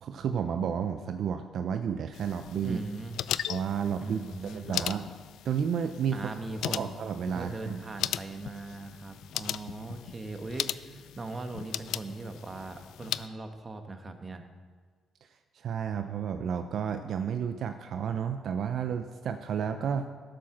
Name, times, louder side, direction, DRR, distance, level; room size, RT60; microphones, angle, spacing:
voice 1, 0.0-2.8 3.5-5.0 5.4-6.2 6.6-7.8 15.5-20.1, right 7 dB, 65° right, 8 dB, 0.6 m, -31 dB
sound 1, 2.1-13.3, left 11 dB, 80° left, 0.3 m, -38 dB
voice 2, 2.6-3.2 4.0-4.9 6.1-6.9 7.3-14.4, right 3 dB, 30° right, 6 dB, 1.3 m, -39 dB
13.0 x 7.7 x 6.0 m, 1.5 s
cardioid pair, 90°, 0 cm